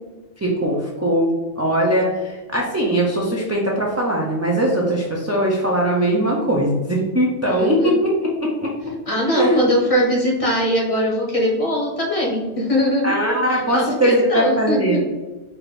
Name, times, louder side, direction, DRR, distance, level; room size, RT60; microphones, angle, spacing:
voice 1, 0.4-8.3 8.6-8.7 9.3-9.6 13.0-15.0, right 1 dB, 25° right, -3 dB, 0.4 m, -20 dB
voice 2, 7.6-7.9 9.1-13.2 13.5-15.0, equal, 35° left, -3 dB, 0.9 m, -21 dB
4.5 x 2.6 x 3.2 m, 1.2 s
omnidirectional pair, 1.2 m